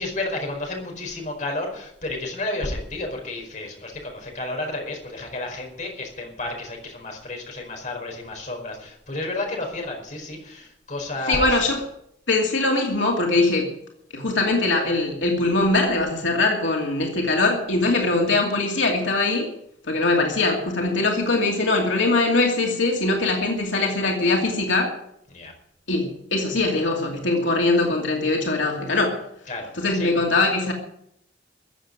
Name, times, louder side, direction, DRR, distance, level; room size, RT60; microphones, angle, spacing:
voice 1, 0.0-11.7 25.3-25.5 29.5-30.1, left 2 dB, 40° left, 2 dB, 4.7 m, -31 dB
voice 2, 11.3-11.8 12.3-13.7 14.1-19.5 19.9-25.0 25.9-29.2 29.7-30.7, left 2 dB, 85° left, 0 dB, 2.5 m, -22 dB
15.0 x 7.6 x 9.6 m, 0.74 s
head